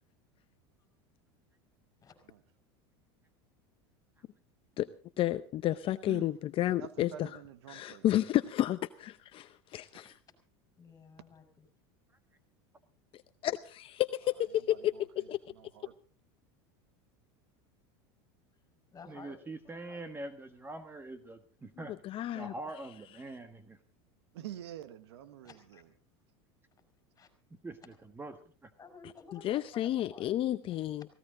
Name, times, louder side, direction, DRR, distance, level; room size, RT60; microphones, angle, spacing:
voice 1, 5.2-7.3 7.7-10.1 13.4-15.4 22.0-22.5 29.4-31.1, left 13 dB, 40° left, 0.7 m, -31 dB
voice 2, 6.6-8.1 14.6-15.9 24.3-25.8, right 11 dB, 85° right, 1.5 m, -48 dB
voice 3, 9.4-10.1 10.8-11.7 18.9-20.0 25.4-25.8 27.2-27.3 28.8-30.3 30.7-30.9, left 4 dB, 25° left, 5.3 m, -54 dB
voice 4, 19.1-21.9 22.3-23.8 27.5-28.7, right 2 dB, 15° right, 1.4 m, -44 dB
18.5 x 17.0 x 3.9 m
supercardioid pair, 110°, 13 cm